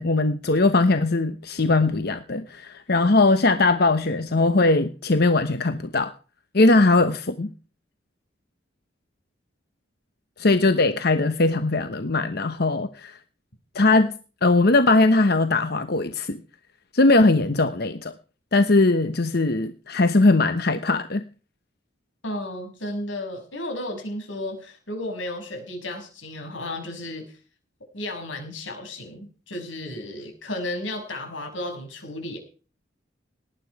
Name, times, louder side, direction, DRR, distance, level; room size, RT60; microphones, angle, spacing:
voice 1, 0.0-6.1 6.5-7.5 10.4-13.2 13.7-14.1 14.4-16.4 16.9-18.1 18.5-21.2, left 2 dB, 55° left, 10 dB, 1.0 m, -20 dB
voice 2, 22.2-27.2 27.9-32.4, left 1 dB, 90° left, 4 dB, 6.5 m, -33 dB
19.0 x 11.5 x 4.8 m, 0.38 s
head